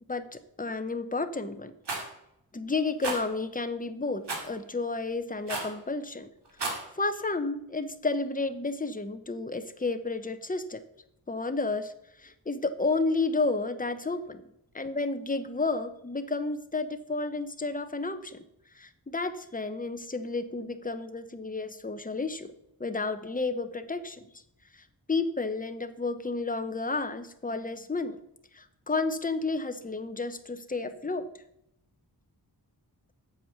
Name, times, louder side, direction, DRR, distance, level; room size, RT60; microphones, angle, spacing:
voice 1, 0.1-1.7 2.5-6.3 7.0-10.8 11.3-11.9 12.2-14.5 14.7-18.4 18.8-22.5 22.8-24.2 24.7-24.8 25.1-28.2 28.5-31.3, left 3 dB, 20° left, 10 dB, 0.8 m, -31 dB
Rattle, 1.9-2.1 3.0-3.2 4.3-4.5 5.5-5.8 6.5-6.8, right 3 dB, 85° right, 2.2 m, -32 dB
8.4 x 7.3 x 6.6 m, 0.80 s
wide cardioid pair, 90°, 40 cm